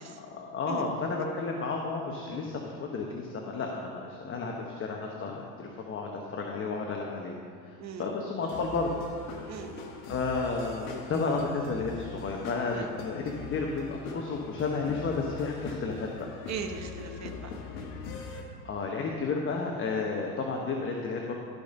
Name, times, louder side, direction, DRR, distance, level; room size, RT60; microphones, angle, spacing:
voice 1, 0.1-7.3 7.6-7.7 8.0-9.0 9.3-9.4 10.1-16.1 18.6-21.3, left 4 dB, 30° left, 0 dB, 1.1 m, -32 dB
voice 2, 7.8-8.1 9.5-9.9 12.7-13.0 16.5-17.5, right 6 dB, 40° right, 6 dB, 1.2 m, -39 dB
sound 1, 8.4-18.4, left 4 dB, 50° left, 1.7 m, -42 dB
13.5 x 5.3 x 5.4 m, 2.4 s
supercardioid pair, 110°, 42 cm